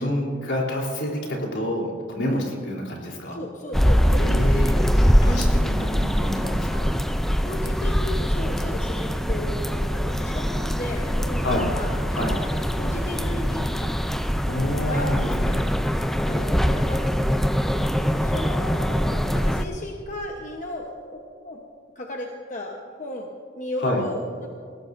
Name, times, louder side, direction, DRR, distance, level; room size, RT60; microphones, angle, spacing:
voice 1, 0.0-3.4 4.2-6.9 11.4-11.7 12.1-12.4 14.5-15.6 23.8-24.0, left 1 dB, 75° left, -1 dB, 3.6 m, -28 dB
voice 2, 3.3-4.3 4.7-5.2 7.4-11.9 12.4-14.0 14.9-15.1 15.4-15.5 15.9-17.1 18.1-21.6 21.9-24.5, left 1 dB, 40° left, 0 dB, 1.1 m, -35 dB
sound 1, 3.7-19.6, equal, ahead, 0.5 m, -23 dB
21.0 x 17.5 x 2.7 m, 2.2 s
head